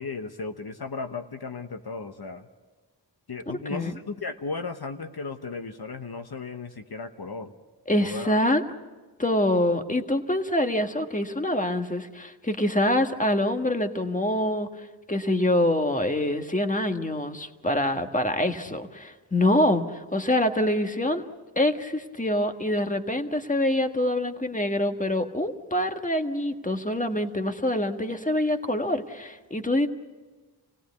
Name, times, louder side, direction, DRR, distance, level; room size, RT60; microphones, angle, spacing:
voice 1, 0.0-2.5 3.3-7.5 8.0-8.5, left 4 dB, 65° left, 6 dB, 1.1 m, -35 dB
voice 2, 3.5-4.0 7.9-8.6 9.2-21.2 21.5-29.9, left 1 dB, 20° left, 6 dB, 1.6 m, -25 dB
28.0 x 17.5 x 8.3 m, 1.3 s
wide cardioid pair, 45°, 41 cm